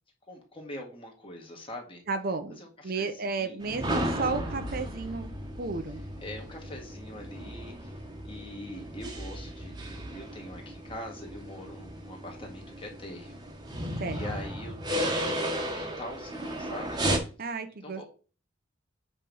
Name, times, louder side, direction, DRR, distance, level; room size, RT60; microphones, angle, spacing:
voice 1, 0.3-2.0 2.5-3.8 6.2-13.4 14.1-15.4 15.6-17.0 17.8-18.0, left 1 dB, 25° left, 0 dB, 1.8 m, -43 dB
voice 2, 2.1-2.6 2.8-5.3 5.6-6.0 14.0-14.3 17.4-18.0, right 4 dB, 45° right, 8 dB, 0.7 m, -32 dB
sound 1, 3.6-17.2, equal, 20° right, 1.2 m, -34 dB
8.5 x 3.3 x 5.4 m, 0.37 s
head